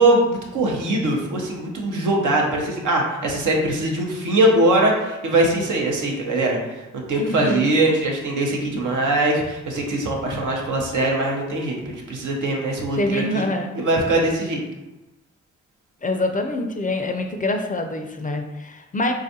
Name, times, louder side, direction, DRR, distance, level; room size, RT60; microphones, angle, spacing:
voice 1, 0.0-13.5 13.7-14.6, right 1 dB, 75° right, 0 dB, 0.7 m, -21 dB
voice 2, 7.2-7.7 13.0-13.7 16.0-19.1, left 2 dB, 25° left, 4 dB, 0.4 m, -25 dB
3.4 x 2.3 x 2.7 m, 1.0 s
supercardioid pair, 40°, 31 cm